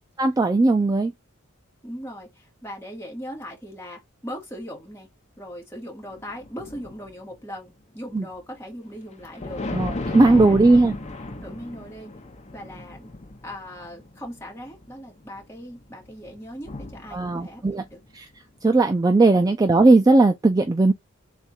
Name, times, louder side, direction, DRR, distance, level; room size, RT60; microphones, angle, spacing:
voice 1, 0.2-1.1 8.1-8.2 9.7-11.0 17.1-17.8 18.1-18.3 18.6-20.9, right 2 dB, 20° right, 0.3 m, -18 dB
voice 2, 1.8-5.1 5.4-9.6 10.2-10.6 11.4-12.1 12.5-13.1 13.4-18.0 19.3-19.4, equal, 10° left, 1.6 m, -39 dB
sound 1, 6.1-7.4 9.0-18.1, left 2 dB, 30° left, 0.7 m, -35 dB
3.6 x 2.4 x 4.1 m
head